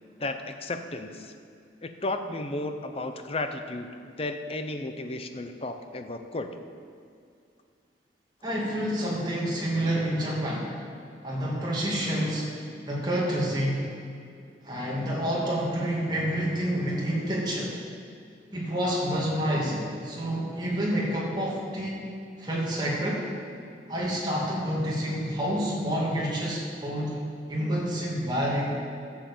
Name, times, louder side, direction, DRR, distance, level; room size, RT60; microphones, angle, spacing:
voice 1, 0.2-1.3 1.8-3.9 4.2-6.6, left 2 dB, 35° left, 7 dB, 0.7 m, -33 dB
voice 2, 8.4-10.7 11.2-12.5 12.9-13.9 14.6-17.7 18.5-22.0 22.4-23.3 23.9-27.1 27.5-28.8, equal, 25° right, -5 dB, 2.4 m, -28 dB
11.5 x 7.1 x 7.2 m, 2.3 s
head